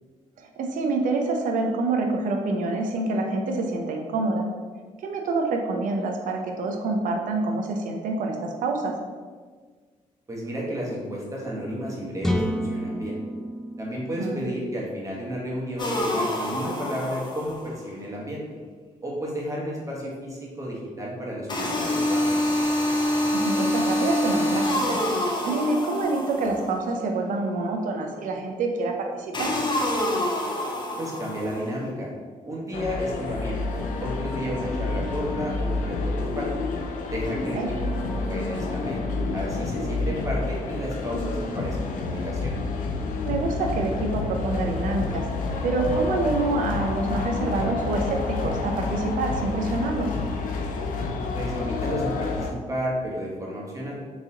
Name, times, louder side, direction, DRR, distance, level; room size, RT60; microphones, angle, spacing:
voice 1, 0.4-4.4 5.0-8.9 14.2-14.5 23.3-25.0 25.4-29.5 37.6-37.7 43.2-45.2 45.6-50.1, right 3 dB, 75° right, 2 dB, 0.5 m, -27 dB
voice 2, 10.3-13.2 13.8-18.4 19.0-22.4 31.0-32.1 32.4-33.6 34.0-36.5 37.0-37.9 38.1-39.0 39.3-42.6 51.3-54.0, equal, 25° right, -4 dB, 1.1 m, -32 dB
sound 1, 12.2-16.0, equal, 5° left, 0.3 m, -31 dB
sound 2, 15.8-17.8 21.5-26.8 29.3-31.7, left 1 dB, 35° left, 0.7 m, -26 dB
sound 3, 32.7-52.5, left 3 dB, 80° left, 0.4 m, -29 dB
3.6 x 3.0 x 2.8 m, 1.5 s
cardioid pair, 75°, 14 cm